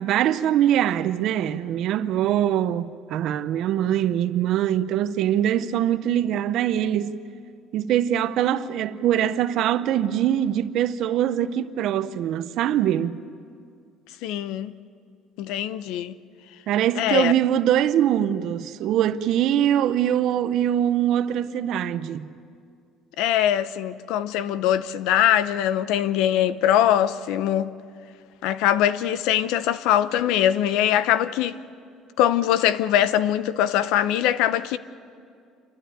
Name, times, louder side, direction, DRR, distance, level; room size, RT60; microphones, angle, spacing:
voice 1, 0.0-7.2 7.7-13.2 16.7-22.3, right 11 dB, 60° right, 0.7 m, -23 dB
voice 2, 14.2-14.7 15.4-16.1 17.0-17.3 23.2-27.7 28.4-31.6 32.2-34.8, left 11 dB, 80° left, 0.7 m, -22 dB
29.0 x 12.5 x 9.0 m
cardioid pair, 150°, 0 cm